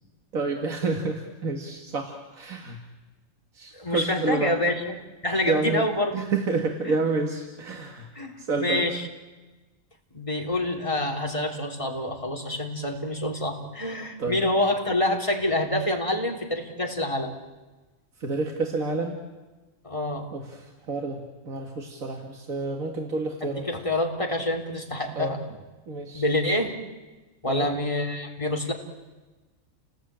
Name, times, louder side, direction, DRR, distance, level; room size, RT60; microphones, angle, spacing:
voice 1, 0.3-2.8 3.6-4.5 5.4-5.8 6.1-8.1 8.4-8.8 14.2-14.4 18.2-19.2 20.3-20.6 20.9-23.7 25.2-25.3 25.9-26.2 27.5-27.7, right 3 dB, 90° right, 3 dB, 2.4 m, -29 dB
voice 2, 3.7-5.0 5.2-6.2 6.9-7.0 8.2-9.1 10.1-17.3 19.8-20.3 23.4-25.4 26.1-26.7 27.4-28.7, left 1 dB, 25° left, 2 dB, 3.4 m, -27 dB
30.0 x 19.0 x 8.9 m, 1.2 s
omnidirectional pair, 1.4 m